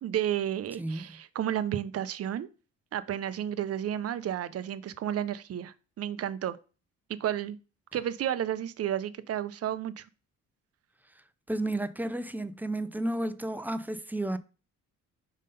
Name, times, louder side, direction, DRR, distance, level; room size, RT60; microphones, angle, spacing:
voice 1, 0.0-2.5 2.9-6.6 7.2-7.6 7.9-10.0, right 10 dB, 50° right, 0.6 m, -32 dB
voice 2, 11.5-14.4, right 1 dB, 5° right, 0.5 m, -32 dB
5.3 x 3.8 x 5.2 m
cardioid pair, 90°, 30 cm